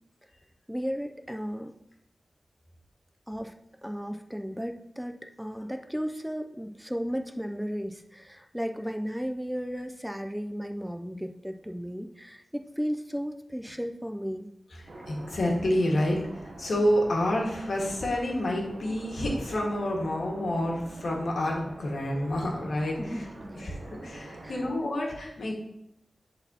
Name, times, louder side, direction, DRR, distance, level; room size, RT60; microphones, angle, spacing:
voice 1, 0.7-1.7 3.3-3.5 3.8-14.5 23.0-23.7 24.4-24.6, equal, 5° right, 5 dB, 0.4 m, -35 dB
voice 2, 14.7-23.2 23.5-25.5, left 1 dB, 75° left, -1 dB, 1.6 m, -29 dB
sound 1, 14.9-24.8, right 2 dB, 65° right, 0.8 m, -45 dB
10.5 x 4.0 x 2.8 m, 0.78 s
wide cardioid pair, 90°, 0 cm